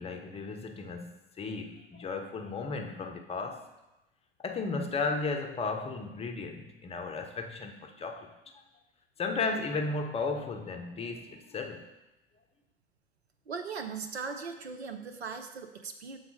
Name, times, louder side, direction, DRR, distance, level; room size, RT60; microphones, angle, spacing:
voice 1, 0.0-3.7 4.4-8.6 9.2-11.9, left 3 dB, 20° left, 5 dB, 0.7 m, -35 dB
voice 2, 13.5-16.2, right 5 dB, 85° right, 7 dB, 0.7 m, -39 dB
7.1 x 4.0 x 4.7 m, 0.99 s
figure-of-eight pair, 85°, 31 cm